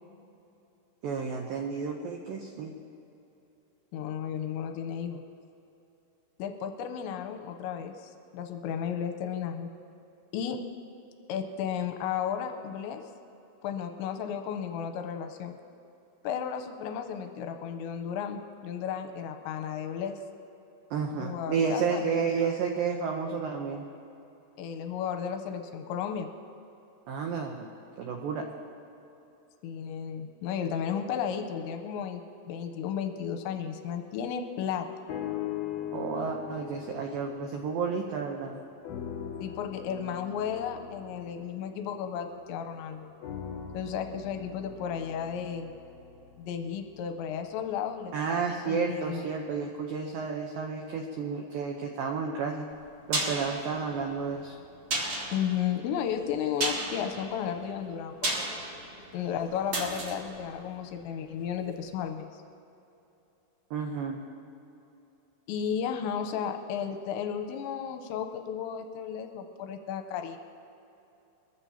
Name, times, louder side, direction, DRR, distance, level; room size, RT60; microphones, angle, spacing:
voice 1, 1.0-2.7 20.9-23.8 27.1-27.7 28.0-28.4 35.9-38.5 48.1-52.7 53.1-54.5 63.7-64.2, right 5 dB, 85° right, 2 dB, 2.0 m, -31 dB
voice 2, 3.9-5.2 6.4-9.7 10.3-10.6 11.3-13.0 13.6-15.6 16.2-20.2 21.2-22.5 24.6-26.3 29.6-34.9 39.4-43.1 43.7-45.7 46.4-48.4 48.6-49.2 55.3-58.2 58.6-58.7 59.1-62.3 65.5-70.4, left 8 dB, 90° left, 6 dB, 3.0 m, -34 dB
sound 1, 35.1-38.4 38.8-42.6 43.2-47.4 48.1-48.2, left 9 dB, 75° left, 2.4 m, -41 dB
sound 2, 52.7-61.6 61.9-62.0, right 2 dB, 60° right, 1.2 m, -35 dB
22.5 x 14.5 x 2.8 m, 2.9 s
omnidirectional pair, 5.3 m